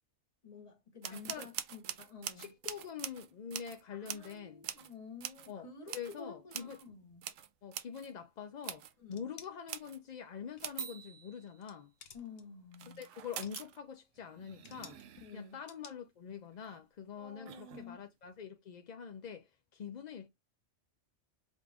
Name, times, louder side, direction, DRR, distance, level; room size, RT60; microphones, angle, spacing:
voice 1, 0.4-2.5 3.9-7.3 9.0-9.3 12.1-13.0 15.2-15.6 17.2-18.0, left 4 dB, 30° left, 1.3 m, -51 dB
sound 1, 1.0-4.4 4.6-4.9 5.2-5.5 5.9-6.2 6.5-6.8 7.1-8.1 8.6-8.9 9.7-10.0 10.6-11.6 12.7-13.8 14.2-15.5 16.5-16.8 17.5-17.9, right 10 dB, 80° right, 0.9 m, -44 dB
voice 2, 1.1-1.5 2.4-4.7 5.5-6.8 7.6-11.9 13.0-15.0 15.3-20.3, left 7 dB, 55° left, 0.5 m, -45 dB
sound 2, 9.1-9.5 10.6-11.1 11.5-11.7 12.0-12.4 13.2-13.8 14.6-15.0 15.7-15.9, left 7 dB, 85° left, 1.2 m, -53 dB
5.1 x 2.5 x 3.3 m
omnidirectional pair, 1.2 m